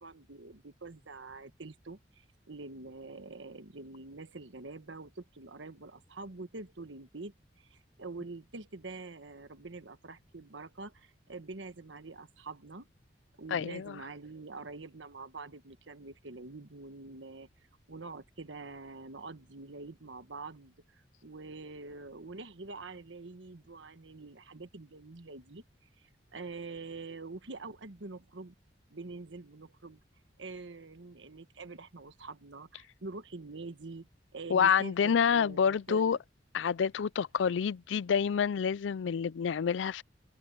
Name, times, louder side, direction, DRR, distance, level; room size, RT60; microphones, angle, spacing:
voice 1, 0.0-12.9 13.4-17.5 17.9-25.6 26.0-28.5 28.9-30.0 30.4-36.2, right 3 dB, 90° right, 1.3 m, -45 dB
voice 2, 13.5-14.0 34.5-36.2 36.5-40.0, left 7 dB, 85° left, 0.4 m, -28 dB
head